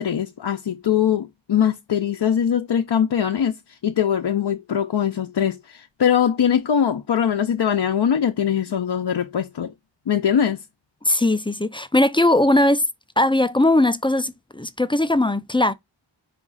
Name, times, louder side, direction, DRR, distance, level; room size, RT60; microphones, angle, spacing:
voice 1, 0.0-3.5 3.8-9.7 10.1-10.6, left 8 dB, 60° left, 0.6 m, -21 dB
voice 2, 11.1-12.8 13.2-15.7, left 1 dB, 10° left, 0.4 m, -19 dB
5.1 x 2.4 x 3.8 m
wide cardioid pair, 55°, 47 cm